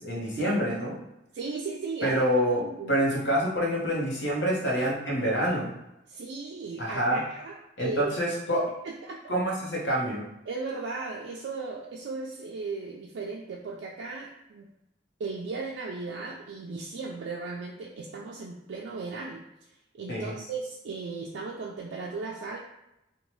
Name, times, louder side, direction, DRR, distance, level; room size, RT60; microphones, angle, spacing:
voice 1, 0.0-1.0 2.0-5.8 6.8-7.2 7.8-8.7 9.3-10.3 20.1-20.4, equal, 75° left, -4 dB, 0.9 m, -27 dB
voice 2, 1.3-2.1 2.6-3.1 6.1-8.2 8.8-9.2 10.5-14.7 15.2-19.4 19.9-22.6, right 4 dB, 75° right, -3 dB, 0.4 m, -36 dB
2.7 x 2.2 x 3.0 m, 0.87 s
head